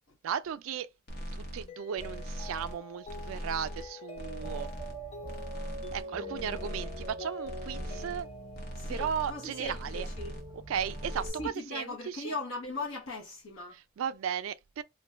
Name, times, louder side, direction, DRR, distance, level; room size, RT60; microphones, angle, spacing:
voice 1, 0.2-0.9 1.4-4.7 5.9-8.3 8.9-10.1 10.5-12.3 14.0-14.8, right 8 dB, 75° right, 0.3 m, -35 dB
sound 1, 1.1-1.7 2.0-2.8 3.1-3.9 4.2-5.0 5.2-6.0 6.3-7.2 7.4-8.2 8.5-9.4 9.6-10.5 10.7-11.3, equal, 50° left, 0.8 m, -40 dB
Mallet percussion, 1.7-9.8, left 3 dB, 30° left, 0.4 m, -47 dB
sound 2, 4.4-11.5, right 2 dB, 20° right, 0.5 m, -44 dB
voice 2, 8.7-10.3 11.2-13.8, left 2 dB, 75° left, 0.9 m, -39 dB
2.5 x 2.2 x 3.1 m
head